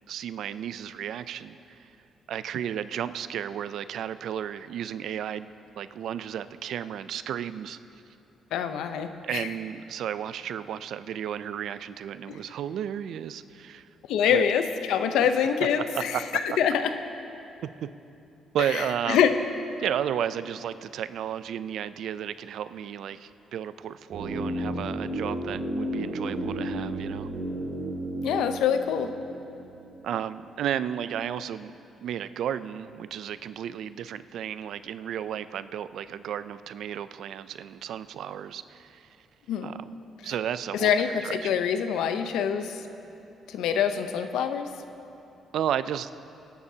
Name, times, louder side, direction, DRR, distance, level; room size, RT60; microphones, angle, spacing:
voice 1, 0.1-1.9 2.3-5.5 5.8-7.8 9.2-13.9 14.3-14.4 15.9-16.2 16.5-16.6 17.8-17.9 18.5-19.2 19.8-27.3 30.0-31.7 32.0-39.1 39.6-39.8 40.2-40.9 41.2-41.5 45.5-46.1, right 9 dB, 75° right, 14 dB, 0.4 m, -33 dB
voice 2, 8.5-9.5 12.3-12.4 14.1-16.9 18.7-19.3 28.2-29.1 39.5-39.7 40.7-42.8 43.5-44.7, left 8 dB, 85° left, 8 dB, 0.7 m, -25 dB
sound 1, 24.1-30.1 30.4-30.5, right 1 dB, 55° right, 2.2 m, -33 dB
21.5 x 11.5 x 2.8 m, 2.8 s
cardioid pair, 90°, 0 cm